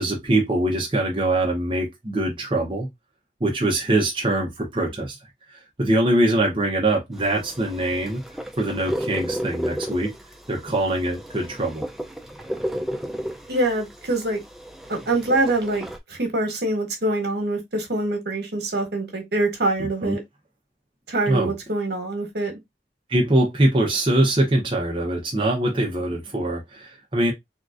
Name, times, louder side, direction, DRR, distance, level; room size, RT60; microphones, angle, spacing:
voice 1, 0.0-2.9 3.4-5.2 5.5-8.2 8.6-10.1 10.5-11.8 19.8-20.1 21.3-21.5 23.1-27.3, right 1 dB, 30° right, 0.7 m, -23 dB
sound 1, 7.1-16.0, equal, ahead, 0.3 m, -33 dB
voice 2, 13.5-14.4 14.9-20.2 21.1-22.5, right 2 dB, 75° right, 1.3 m, -24 dB
3.7 x 2.4 x 2.4 m
head